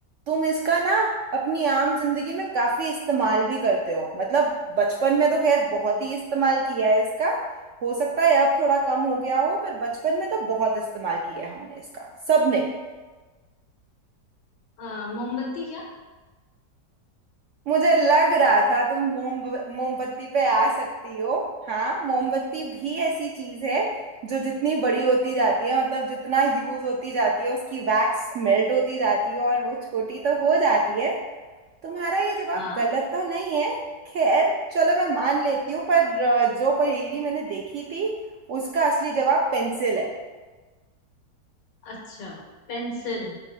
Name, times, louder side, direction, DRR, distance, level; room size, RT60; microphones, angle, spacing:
voice 1, 0.3-7.4 7.8-12.7 17.7-24.0 24.2-31.2 31.8-33.8 34.1-38.2 38.5-40.1, right 3 dB, 70° right, -1 dB, 0.7 m, -23 dB
voice 2, 14.8-15.9 32.5-32.8 41.8-42.4 42.7-43.4, left 2 dB, 80° left, -2 dB, 1.6 m, -33 dB
4.6 x 3.9 x 5.2 m, 1.3 s
omnidirectional pair, 1.9 m